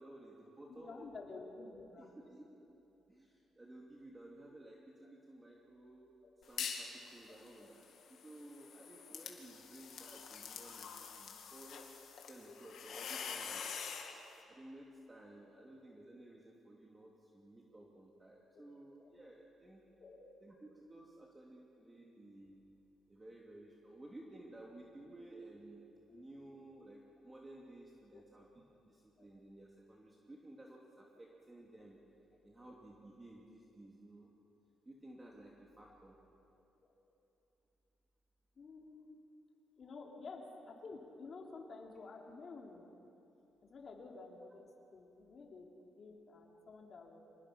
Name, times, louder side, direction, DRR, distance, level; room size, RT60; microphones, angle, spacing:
voice 1, 0.0-1.1 2.0-2.5 3.1-7.8 8.1-11.9 12.3-13.7 14.5-19.8 20.4-22.6 23.1-25.8 26.1-28.5 28.8-32.0 32.4-34.3 34.8-36.2, right 1 dB, 20° right, -2 dB, 2.5 m, -55 dB
voice 2, 0.8-2.2 5.0-5.1 6.2-6.3 7.3-7.4 9.1-9.4 12.4-12.6 15.5-15.6 18.5-18.6 19.0-19.1 20.0-20.2 26.1-26.2 28.1-28.2 29.2-29.3 32.6-32.7 38.6-39.2 39.8-42.9 43.6-47.2, left 3 dB, 50° left, 0 dB, 3.5 m, -52 dB
sound 1, 6.4-6.9 7.3-14.1, left 6 dB, 70° left, 2.5 m, -46 dB
26.0 x 20.0 x 5.9 m, 2.9 s
cardioid pair, 90°, 0 cm